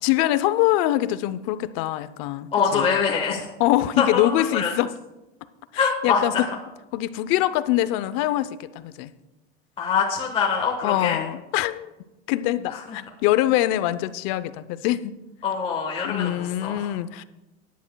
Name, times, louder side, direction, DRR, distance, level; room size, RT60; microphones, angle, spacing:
voice 1, 0.0-2.9 3.6-4.9 5.7-6.5 6.9-9.1 10.8-11.9 12.3-15.1 16.0-17.2, left 14 dB, 50° left, 14 dB, 0.6 m, -24 dB
voice 2, 2.5-3.4 4.0-4.7 5.8-6.5 9.8-11.2 12.7-13.0 15.4-16.8, left 6 dB, 20° left, -1 dB, 1.3 m, -24 dB
19.5 x 10.5 x 2.3 m, 0.99 s
supercardioid pair, 150°, 29 cm